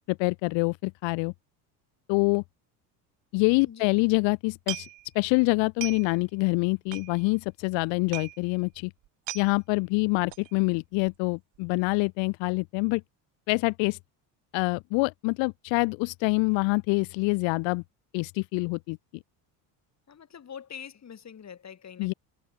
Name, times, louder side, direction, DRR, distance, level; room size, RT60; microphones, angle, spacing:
voice 1, 0.1-1.3 2.1-2.4 3.3-4.9 5.1-8.9 9.3-13.0 13.5-14.0 14.5-17.8 18.1-19.0 22.0-22.1, left 29 dB, 70° left, 0.9 m, -26 dB
voice 2, 3.7-4.0 20.1-22.1, left 8 dB, 35° left, 3.0 m, -44 dB
sound 1, 4.6-5.3 5.6-6.3 6.6-6.7 6.9-7.5 7.8-7.9 8.1-8.4 8.7-8.8 9.0-9.5 10.3-10.5 10.9-11.3 11.5-11.6, right 17 dB, 65° right, 5.6 m, -38 dB
supercardioid pair, 80°, 47 cm